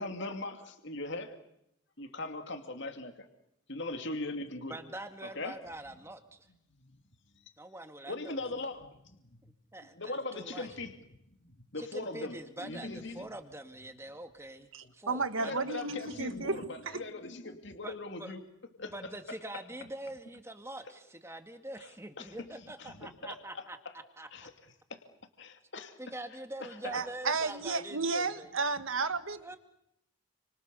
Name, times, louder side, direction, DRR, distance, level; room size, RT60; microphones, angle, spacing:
voice 1, 0.0-1.3 2.0-3.3 3.7-4.8 5.4-5.5 6.8-6.9 8.1-9.4 9.9-10.9 11.4-13.3 15.4-18.4 18.8-19.1 21.8-21.9 22.2-22.5 22.8-23.6 24.3-24.5 24.9-25.0 25.4-25.9 26.6-27.0, left 2 dB, 55° left, 6 dB, 2.4 m, -40 dB
voice 2, 4.7-6.4 7.6-8.4 9.4-10.7 11.8-14.7 14.9-15.6 17.8-18.3 18.9-23.8 24.2-24.5 26.0-28.5 29.4-29.6, right 1 dB, 10° right, 7 dB, 2.0 m, -44 dB
voice 3, 14.7-17.0 26.9-29.4, right 4 dB, 65° right, 11 dB, 1.5 m, -33 dB
30.0 x 25.5 x 6.9 m, 0.80 s
head